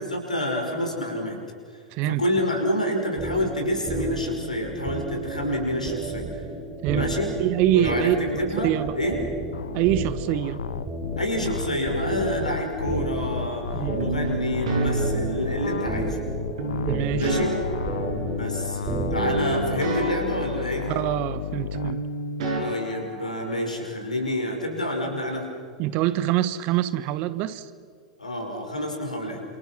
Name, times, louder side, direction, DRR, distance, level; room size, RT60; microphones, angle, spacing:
voice 1, 0.0-1.4 1.7-6.4 6.9-7.3 7.7-9.2 11.2-13.6 14.0-16.2 17.2-17.5 18.3-18.8 19.1-20.9 22.6-25.5 28.2-29.4, left 1 dB, 85° left, 5.6 m, -28 dB
voice 2, 1.9-2.2 6.8-7.1 7.4-8.3 8.6-9.0 9.7-10.6 13.7-14.0 16.8-17.3 20.9-22.1 25.8-27.7, right 13 dB, 45° right, 1.3 m, -25 dB
sound 1, 3.2-19.8, right 3 dB, 25° right, 4.2 m, -32 dB
sound 2, 9.5-21.9, left 8 dB, 70° left, 0.8 m, -33 dB
sound 3, 14.0-16.0 16.6-18.9 19.2-21.5 21.7-23.8, right 2 dB, 60° right, 7.2 m, -30 dB
30.0 x 28.0 x 6.1 m
figure-of-eight pair, 95°, 4 cm